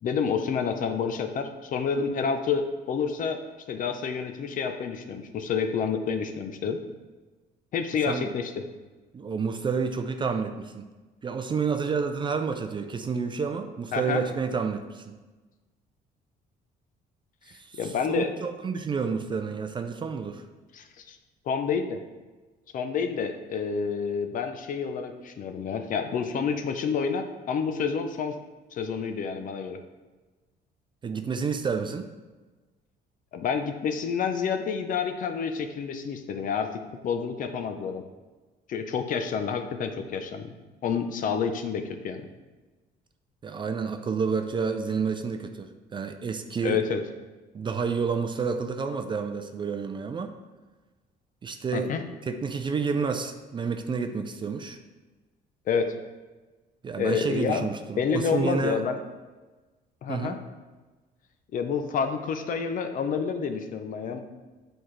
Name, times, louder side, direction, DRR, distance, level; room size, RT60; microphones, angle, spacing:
voice 1, 0.0-3.4 3.7-6.8 7.7-8.7 13.9-14.2 17.8-18.3 20.7-21.2 21.5-22.0 22.7-28.4 28.7-29.8 33.3-36.7 37.0-38.0 38.7-40.5 40.8-42.3 46.6-47.0 51.7-52.0 55.7-55.9 57.0-57.7 58.0-59.0 60.0-60.3 61.5-64.2, left 6 dB, 50° left, 7 dB, 0.7 m, -29 dB
voice 2, 9.1-10.9 11.2-15.2 17.5-20.4 31.0-32.1 43.4-46.8 47.5-50.3 51.4-51.9 52.2-54.8 56.8-58.8 60.1-60.4, right 5 dB, 30° right, 7 dB, 0.4 m, -30 dB
7.8 x 4.4 x 3.2 m, 1.3 s
cardioid pair, 110°, 17 cm